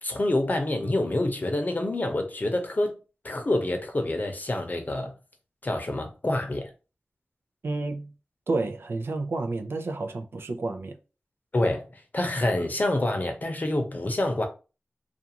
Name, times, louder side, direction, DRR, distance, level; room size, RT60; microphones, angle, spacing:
voice 1, 0.0-3.0 3.2-5.1 5.6-6.7 11.5-14.5, left 1 dB, 45° left, 0.7 m, -27 dB
voice 2, 7.6-8.1 8.5-11.0, right 3 dB, 70° right, 0.4 m, -30 dB
2.5 x 2.4 x 2.8 m
cardioid pair, 40°, 4 cm